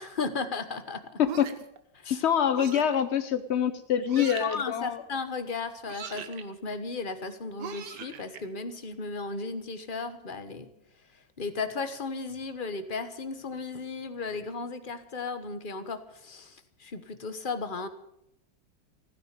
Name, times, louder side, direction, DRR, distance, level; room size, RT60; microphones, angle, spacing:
voice 1, 0.0-1.2 1.9-2.2 4.0-10.7 11.4-17.9, left 4 dB, 30° left, 10 dB, 1.2 m, -35 dB
sound 1, 1.2-1.8 2.5-3.0 4.1-4.6 5.9-6.4 7.6-8.4, right 7 dB, 65° right, 1.7 m, -40 dB
voice 2, 2.1-5.0, left 9 dB, 70° left, 11 dB, 0.6 m, -25 dB
16.0 x 10.0 x 9.0 m, 0.79 s
omnidirectional pair, 2.1 m